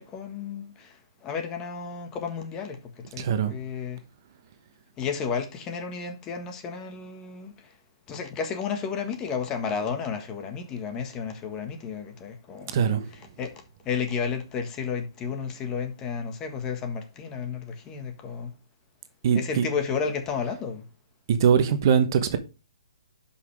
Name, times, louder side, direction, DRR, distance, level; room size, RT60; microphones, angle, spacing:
voice 1, 0.0-4.0 5.0-7.8 8.1-18.5 19.3-20.9, left 6 dB, 20° left, 1.6 m, -32 dB
voice 2, 3.2-3.5 12.7-13.0 19.2-19.6 21.3-22.4, right 7 dB, 45° right, 1.1 m, -22 dB
11.0 x 5.8 x 3.5 m
hypercardioid pair, 145°, 3 cm